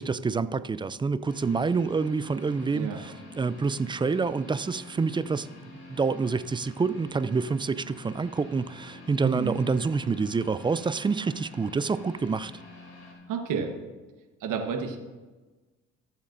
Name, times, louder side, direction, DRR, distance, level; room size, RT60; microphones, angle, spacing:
voice 1, 0.0-5.5 5.9-12.5, right 4 dB, 15° right, 0.3 m, -27 dB
sound 1, 1.3-13.1, left 2 dB, 55° left, 3.5 m, -47 dB
voice 2, 9.2-9.6 13.3-13.7 14.4-15.0, right 6 dB, 75° right, 1.3 m, -30 dB
21.5 x 7.3 x 2.6 m
supercardioid pair, 80°, 31 cm